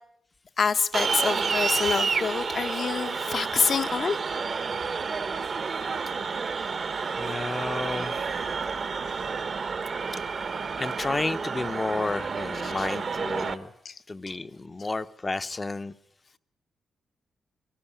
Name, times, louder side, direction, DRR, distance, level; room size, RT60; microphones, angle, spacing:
voice 1, 0.6-4.2 9.1-9.2 10.0-10.3 12.6-12.9 13.8-13.9, left 5 dB, 50° left, 0.9 m, -27 dB
sound 1, 0.9-13.5, right 5 dB, 45° right, 1.0 m, -30 dB
voice 2, 7.2-8.2 10.8-13.7 14.1-15.9, left 3 dB, 25° left, 0.7 m, -31 dB
22.0 x 13.0 x 10.0 m
cardioid pair, 115°, 0 cm